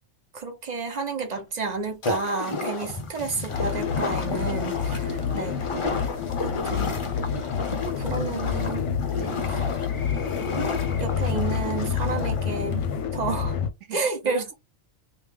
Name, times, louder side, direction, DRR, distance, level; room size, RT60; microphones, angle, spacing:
voice 1, 0.3-5.0 5.3-5.5 6.4-7.0 7.9-8.9 9.5-9.6 11.0-13.6 13.9-14.5, right 4 dB, 40° right, 0.7 m, -31 dB
sound 1, 1.4-2.5 2.8-3.7 4.0-7.8, equal, 15° right, 1.0 m, -49 dB
sound 2, 2.0-13.0, left 3 dB, 35° left, 0.5 m, -33 dB
sound 3, 3.5-13.7, left 7 dB, 65° left, 0.9 m, -28 dB
voice 2, 4.9-5.9 9.1-9.7 13.8-14.5, right 6 dB, 75° right, 1.0 m, -41 dB
3.1 x 2.5 x 3.5 m
omnidirectional pair, 1.4 m